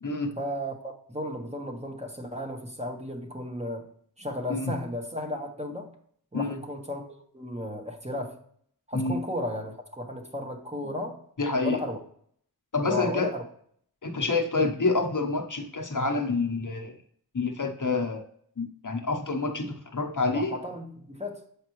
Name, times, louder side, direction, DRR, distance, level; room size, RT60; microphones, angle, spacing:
voice 1, 0.4-3.9 4.2-5.9 6.3-7.0 7.3-8.4 8.9-11.2 11.6-12.0 12.8-13.4 20.3-21.4, left 1 dB, 15° right, 3 dB, 1.2 m, -34 dB
voice 2, 11.4-11.8 12.7-13.3 14.0-16.9 17.3-18.2 18.6-20.5, left 3 dB, 50° left, 3 dB, 1.0 m, -27 dB
7.3 x 5.0 x 3.1 m, 0.63 s
wide cardioid pair, 45°, 39 cm